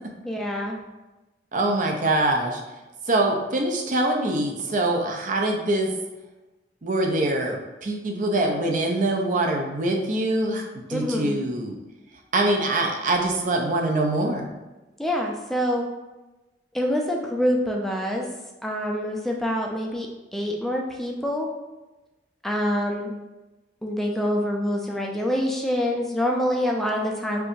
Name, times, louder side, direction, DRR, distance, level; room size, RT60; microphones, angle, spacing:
voice 1, 0.2-0.8 10.9-11.4 15.0-15.9 16.7-18.2 18.6-20.1 20.3-21.5 22.4-23.1 23.8-27.5, equal, ahead, 0 dB, 0.4 m, -26 dB
voice 2, 1.5-2.6 3.1-5.9 6.8-10.6 10.9-11.7 12.3-14.4, right 2 dB, 45° right, 2 dB, 0.5 m, -24 dB
4.6 x 2.5 x 2.6 m, 1.1 s
head